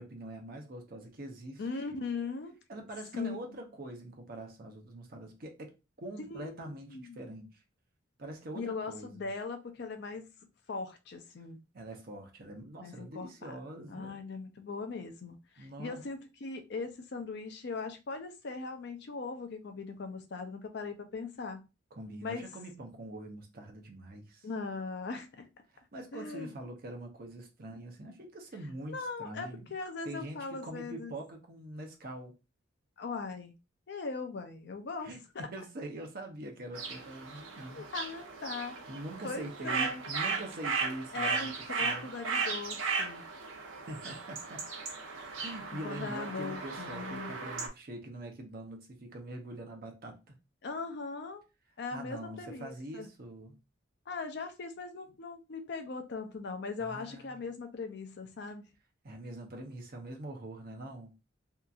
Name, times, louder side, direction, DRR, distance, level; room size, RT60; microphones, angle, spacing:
voice 1, 0.0-1.6 1.9-2.0 2.7-7.6 8.2-9.3 11.7-14.2 15.6-16.0 21.9-24.5 25.7-29.7 30.0-32.4 35.0-37.8 38.6-41.5 41.8-42.1 43.9-44.6 45.4-50.4 51.9-53.6 56.8-57.4 59.0-61.1, right 1 dB, 50° right, 0.6 m, -44 dB
voice 2, 1.6-2.6 3.1-3.4 6.3-7.2 8.5-10.2 10.7-11.6 12.8-13.6 13.9-21.6 22.2-22.5 24.4-25.5 26.1-26.5 28.9-31.1 33.0-33.5 33.9-35.1 37.7-38.8 39.2-40.0 41.1-43.2 45.8-47.3 50.6-51.4 51.8-53.1 54.1-58.6, left 4 dB, 60° left, 0.5 m, -39 dB
sound 1, 36.7-47.7, right 5 dB, 90° right, 0.7 m, -36 dB
2.8 x 2.5 x 2.3 m
head